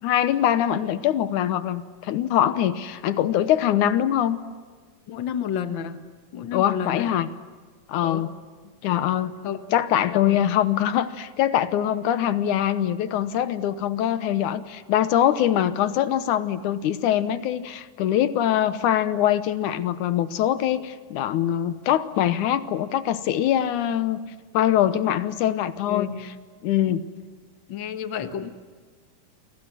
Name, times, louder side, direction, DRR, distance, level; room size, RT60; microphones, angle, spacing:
voice 1, 0.0-4.4 6.5-7.3 7.9-8.3 8.8-9.3 9.7-24.2 24.5-26.3 26.6-27.0, left 11 dB, 75° left, 12 dB, 2.4 m, -23 dB
voice 2, 5.1-6.0 6.3-7.1 8.0-8.3 9.4-9.6 10.1-10.5 25.9-26.2 26.8-26.9 27.7-28.5, left 8 dB, 50° left, 8 dB, 1.6 m, -31 dB
29.5 x 25.0 x 7.5 m, 1.5 s
omnidirectional pair, 3.7 m